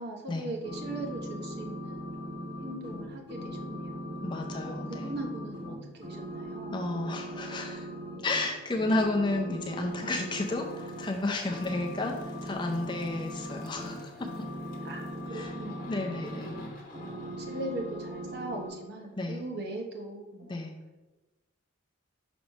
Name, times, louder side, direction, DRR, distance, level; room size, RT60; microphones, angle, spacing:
voice 1, 0.0-4.2 4.7-7.1 14.8-16.8 17.1-20.6, right 1 dB, 50° right, 1 dB, 1.0 m, -40 dB
sound 1, 0.6-5.7 6.0-8.4 8.7-11.1 11.5-16.6 16.9-18.7, equal, 25° right, 1.5 m, -39 dB
voice 2, 4.2-5.1 6.7-7.9 8.2-14.3 15.3-15.5 15.9-16.5 19.2-19.4 20.5-20.7, left 2 dB, 20° left, 2 dB, 0.5 m, -32 dB
sound 2, 9.6-19.2, left 2 dB, 40° left, 1.0 m, -52 dB
6.1 x 3.2 x 5.3 m, 1.2 s
head